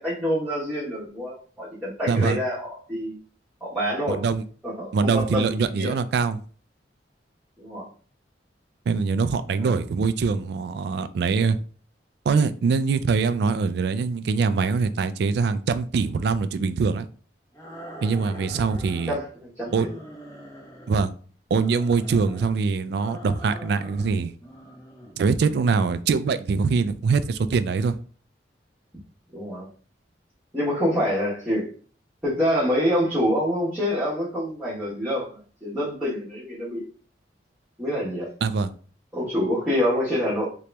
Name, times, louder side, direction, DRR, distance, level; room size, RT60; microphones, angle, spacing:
voice 1, 0.0-3.2 3.6-4.2 4.6-5.9 7.6-7.9 9.6-9.8 18.3-18.4 19.1-19.9 29.3-29.7 30.5-31.7 32.2-36.9 37.8-38.3 39.1-40.5, equal, 5° right, -11 dB, 1.2 m, -26 dB
voice 2, 2.1-2.4 4.1-4.4 4.9-6.4 8.9-11.6 12.3-17.1 18.0-19.2 19.7-19.9 20.9-21.1 21.5-24.3 25.2-27.9 38.4-38.7, right 5 dB, 60° right, 12 dB, 0.3 m, -23 dB
sound 1, 17.5-19.3 19.6-21.1 21.5-22.6 23.0-24.1 24.4-25.2, equal, 15° left, 1.0 m, -43 dB
3.0 x 2.9 x 3.3 m, 0.41 s
head